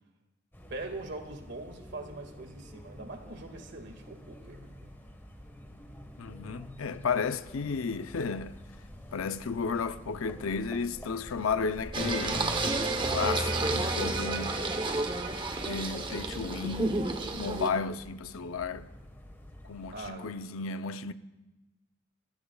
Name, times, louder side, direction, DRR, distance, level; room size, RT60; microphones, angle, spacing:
sound 1, 0.5-20.1, equal, 10° left, 1.4 m, -49 dB
voice 1, 0.7-4.7 19.9-20.5, right 2 dB, 55° right, 2.0 m, -42 dB
voice 2, 6.2-8.6 9.1-12.5 13.0-14.6 15.7-17.1 17.3-18.9 19.6-21.1, left 5 dB, 90° left, 0.6 m, -33 dB
Singing, 11.9-17.7, right 2 dB, 25° right, 0.9 m, -30 dB
29.5 x 15.0 x 2.4 m
head